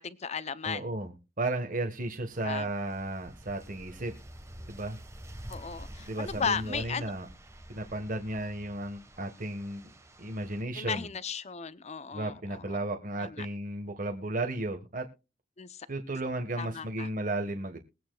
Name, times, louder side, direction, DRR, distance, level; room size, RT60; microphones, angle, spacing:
voice 1, 0.0-0.9 2.4-2.7 5.5-7.1 10.7-12.8 13.2-13.5 15.6-15.9 16.6-17.1, left 6 dB, 40° left, 0.7 m, -35 dB
voice 2, 0.6-4.1 4.7-5.0 6.0-7.3 7.7-9.9 10.2-11.1 12.1-15.1 15.9-17.8, right 2 dB, 50° right, 1.5 m, -34 dB
sound 1, 2.3-10.6, right 1 dB, 15° right, 1.5 m, -48 dB
22.0 x 9.2 x 2.4 m
head